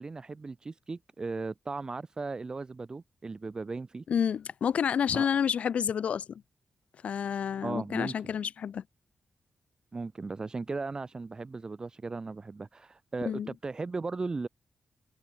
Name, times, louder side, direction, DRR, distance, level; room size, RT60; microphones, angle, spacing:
voice 1, 0.0-4.0 5.1-5.3 7.6-8.1 9.9-14.5, right 3 dB, 35° right, 1.2 m, -37 dB
voice 2, 4.1-6.4 7.0-8.8 13.2-13.5, left 8 dB, 75° left, 0.4 m, -29 dB
cardioid pair, 90°, 2 cm